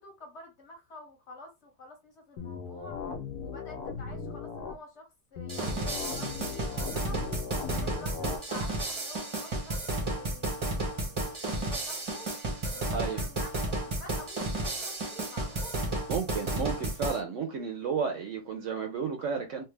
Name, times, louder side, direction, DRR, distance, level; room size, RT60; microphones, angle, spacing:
voice 1, 0.0-3.0 3.4-7.2 7.7-12.3 12.7-15.8, left 2 dB, 50° left, 1.2 m, -49 dB
sound 1, 2.4-4.8 5.4-8.4, left 5 dB, 80° left, 1.2 m, -38 dB
sound 2, 5.5-17.2, right 2 dB, 30° right, 0.6 m, -32 dB
voice 2, 12.9-13.3 16.1-19.6, right 6 dB, 65° right, 0.9 m, -32 dB
3.3 x 2.0 x 3.2 m
omnidirectional pair, 1.6 m